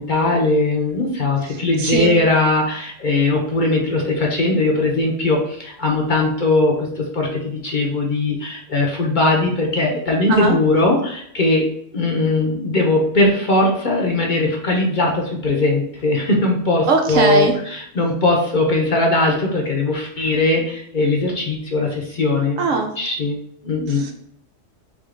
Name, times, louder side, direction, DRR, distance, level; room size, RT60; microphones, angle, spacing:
voice 1, 0.0-11.7 11.9-22.6 23.0-23.4 23.6-24.1, left 2 dB, 45° left, 0 dB, 0.8 m, -19 dB
voice 2, 1.5-2.2 10.3-10.6 16.9-17.5 22.6-22.9 23.9-24.1, right 4 dB, 80° right, 4 dB, 1.1 m, -20 dB
3.6 x 3.6 x 3.7 m, 0.68 s
omnidirectional pair, 1.3 m